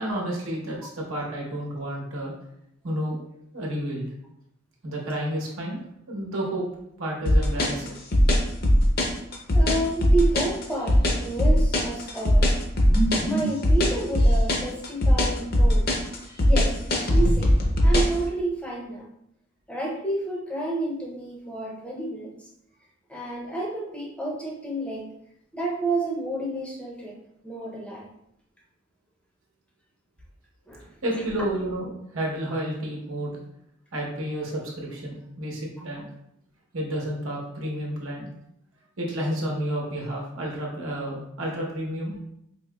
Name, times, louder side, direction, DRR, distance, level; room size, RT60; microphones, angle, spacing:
voice 1, 0.0-2.3 2.8-3.2 3.5-4.1 4.8-6.6 7.0-7.9 31.0-33.3 33.9-36.1 36.7-38.3 39.0-42.1, right 1 dB, 85° right, -2 dB, 1.0 m, -30 dB
sound 1, 7.3-18.2, equal, 50° left, 0.6 m, -19 dB
voice 2, 9.5-12.5 12.9-15.9 16.4-17.6 17.8-19.1 19.7-22.5 23.1-25.1 25.5-27.2 27.4-28.1 30.7-30.8 31.1-31.2, right 2 dB, 5° left, -3 dB, 0.5 m, -30 dB
4.6 x 2.8 x 2.3 m, 0.77 s
head